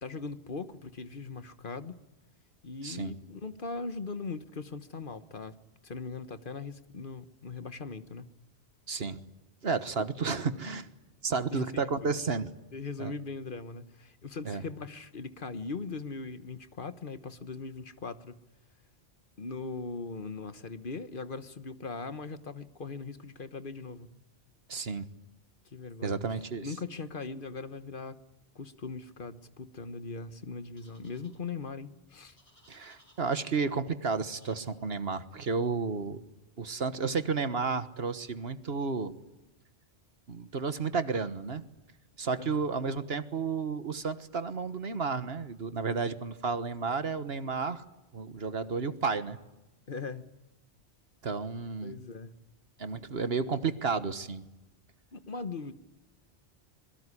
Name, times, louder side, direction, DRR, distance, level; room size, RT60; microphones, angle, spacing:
voice 1, 0.0-2.0 2.6-5.6 5.8-8.3 11.5-12.1 12.7-18.4 19.4-24.1 25.7-26.2 26.6-28.2 28.5-32.4 42.4-42.6 49.9-50.3 51.8-52.3 55.1-55.7, left 4 dB, 50° left, 1.3 m, -40 dB
voice 2, 2.8-3.1 8.9-9.2 9.6-10.9 11.2-12.5 13.0-13.1 14.4-14.6 24.7-25.1 26.0-26.7 32.7-36.2 36.6-39.1 40.3-41.6 42.2-47.8 48.1-49.4 51.2-51.9 52.8-54.4, right 4 dB, 65° right, 1.6 m, -32 dB
sound 1, 30.8-31.4 32.3-33.8 34.3-34.7, equal, 30° left, 6.4 m, -62 dB
26.0 x 22.5 x 9.9 m
omnidirectional pair, 1.1 m